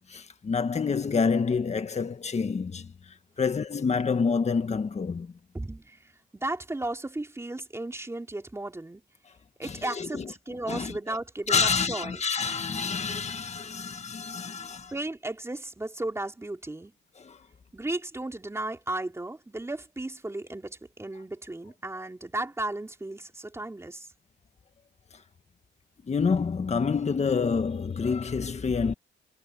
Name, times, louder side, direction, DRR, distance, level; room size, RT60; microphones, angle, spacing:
voice 1, 0.1-2.9 3.4-5.3 9.6-10.3 10.7-11.2 11.5-14.9 17.2-17.4 26.1-28.9, left 5 dB, 35° left, 1.8 m, -28 dB
voice 2, 6.3-9.0 9.6-12.2 14.9-16.9 17.7-24.1, right 2 dB, 15° right, 3.6 m, -35 dB
cardioid pair, 90°, 20 cm